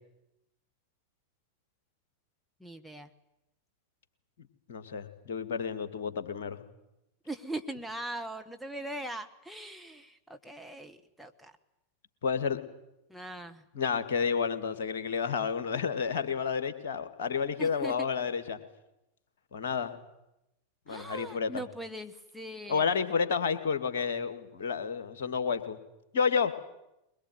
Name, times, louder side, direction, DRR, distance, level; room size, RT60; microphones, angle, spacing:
voice 1, 2.6-3.1 7.3-11.6 13.1-13.6 17.6-18.1 20.9-22.8, right 1 dB, ahead, 8 dB, 1.3 m, -40 dB
voice 2, 4.7-6.6 12.2-12.6 13.7-18.6 19.5-20.0 20.9-21.6 22.7-25.8 26.1-26.5, left 6 dB, 60° left, 10 dB, 2.2 m, -30 dB
22.5 x 22.0 x 9.4 m, 0.87 s
figure-of-eight pair, 90°, 0 cm